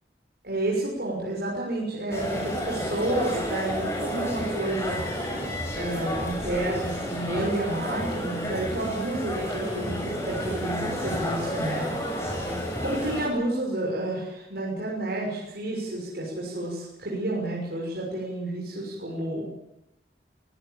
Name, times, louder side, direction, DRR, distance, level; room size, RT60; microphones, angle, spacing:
voice 1, 0.4-5.0 5.8-12.3 12.8-19.5, right 1 dB, 65° right, -3 dB, 6.3 m, -30 dB
sound 1, 2.1-13.3, equal, 15° left, 7.3 m, -31 dB
24.0 x 17.0 x 8.8 m, 0.89 s
head